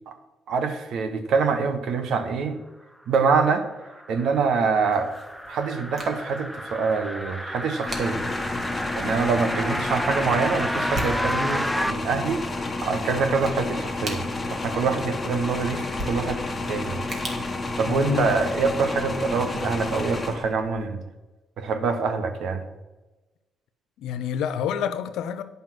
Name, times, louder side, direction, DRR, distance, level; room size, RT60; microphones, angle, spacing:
voice 1, 0.5-2.6 3.1-3.6 4.1-5.1 5.5-8.2 8.9-12.4 12.8-14.2 14.5-16.4 16.7-17.0 17.8-21.0 21.6-22.6, right 5 dB, 75° right, 1.2 m, -25 dB
sound 1, 3.6-11.9, equal, ahead, 0.5 m, -31 dB
sound 2, 4.9-18.5, right 1 dB, 40° right, 2.1 m, -41 dB
sound 3, 7.9-20.9, left 2 dB, 20° left, 1.3 m, -30 dB
voice 2, 17.9-18.3 24.0-25.4, left 8 dB, 85° left, 0.7 m, -27 dB
9.6 x 5.5 x 6.1 m
cardioid pair, 90°, 0 cm